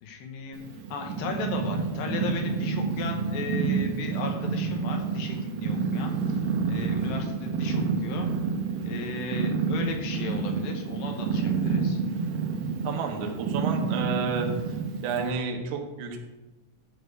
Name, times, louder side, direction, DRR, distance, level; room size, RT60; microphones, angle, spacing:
voice 1, 0.0-8.3 8.8-12.0, left 5 dB, 70° left, 3 dB, 3.0 m, -36 dB
Purr, 0.5-15.3, right 5 dB, 90° right, 3.9 m, -29 dB
voice 2, 12.8-14.5 15.0-16.2, right 5 dB, 65° right, 2 dB, 3.1 m, -30 dB
13.5 x 4.5 x 8.2 m, 1.1 s
omnidirectional pair, 5.6 m